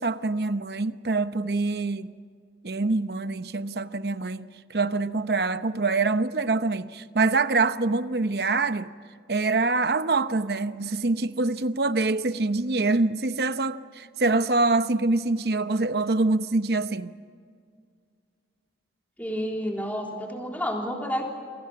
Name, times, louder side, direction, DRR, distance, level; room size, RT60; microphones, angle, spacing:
voice 1, 0.0-2.1 2.6-8.9 9.3-17.1, right 3 dB, 65° right, 0.8 m, -25 dB
voice 2, 19.2-21.2, equal, 10° left, 3.5 m, -30 dB
28.0 x 24.5 x 6.0 m
head